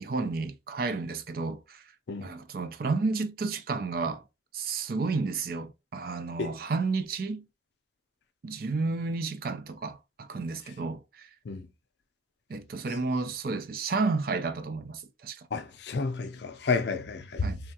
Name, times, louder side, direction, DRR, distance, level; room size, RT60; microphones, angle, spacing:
voice 1, 0.0-1.8 2.2-4.2 4.5-7.5 8.4-11.3 12.5-15.4 17.4-17.6, right 4 dB, 50° right, 0.4 m, -31 dB
voice 2, 15.5-17.5, left 4 dB, 65° left, 0.4 m, -31 dB
3.3 x 2.3 x 2.7 m
head